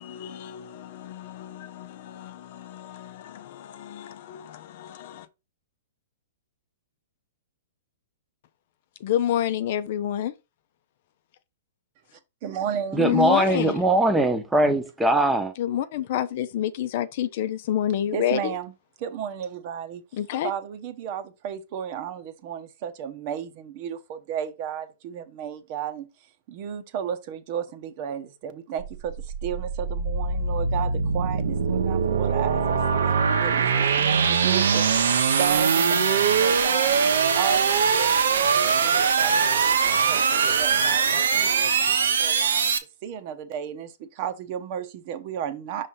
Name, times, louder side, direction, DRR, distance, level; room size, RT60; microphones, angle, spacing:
voice 1, 0.0-5.3 9.0-10.3 13.0-13.8 15.6-18.6 20.1-20.5, left 11 dB, 55° left, 0.6 m, -29 dB
voice 2, 12.4-13.1 14.7-14.8 18.1-18.7 19.0-20.0 20.4-26.1 26.5-32.7 33.0-37.0 37.3-40.3 40.6-42.7 43.0-45.9, right 9 dB, 45° right, 0.9 m, -34 dB
voice 3, 12.9-15.5, right 1 dB, 5° right, 0.9 m, -21 dB
sound 1, 28.8-42.8, right 6 dB, 75° right, 0.9 m, -22 dB
5.5 x 3.3 x 5.5 m
hypercardioid pair, 130°, 0 cm